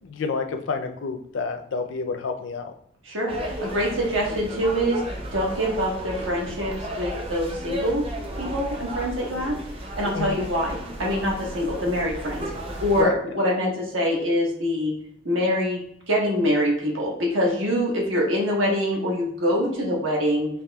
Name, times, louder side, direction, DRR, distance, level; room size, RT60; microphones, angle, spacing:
voice 1, 0.0-2.7 10.1-10.4 13.0-13.1, left 4 dB, 70° left, 6 dB, 0.4 m, -28 dB
voice 2, 3.0-5.0 5.3-8.0 8.4-9.5 10.0-12.5 12.8-14.9 15.2-15.8 16.1-20.5, equal, 85° right, -2 dB, 1.3 m, -24 dB
sound 1, 3.3-13.0, right 1 dB, 30° right, 0.6 m, -34 dB
5.6 x 3.0 x 2.3 m, 0.68 s
head